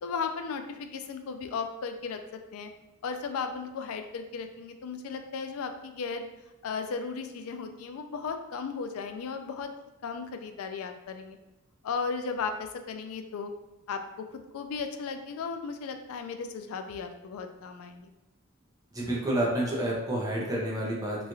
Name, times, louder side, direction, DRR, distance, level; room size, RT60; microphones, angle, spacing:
voice 1, 0.0-2.7 3.0-6.3 6.6-9.7 10.0-11.4 11.8-13.5 13.9-18.1, left 5 dB, 75° left, 7 dB, 0.3 m, -35 dB
voice 2, 18.9-21.3, right 1 dB, 15° right, -4 dB, 0.6 m, -29 dB
2.9 x 2.4 x 2.6 m, 0.97 s
head